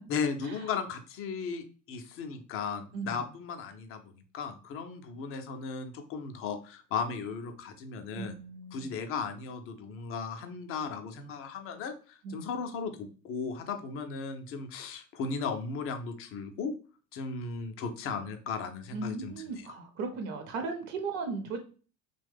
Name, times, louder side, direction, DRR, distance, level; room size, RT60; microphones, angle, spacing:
voice 1, 0.1-8.4 8.7-16.7 17.1-19.7, left 5 dB, 30° left, 7 dB, 0.4 m, -36 dB
voice 2, 8.2-8.9 12.2-12.5 18.9-21.6, right 4 dB, 45° right, 5 dB, 0.7 m, -36 dB
3.0 x 2.2 x 3.3 m, 0.38 s
figure-of-eight pair, 70°, 50 cm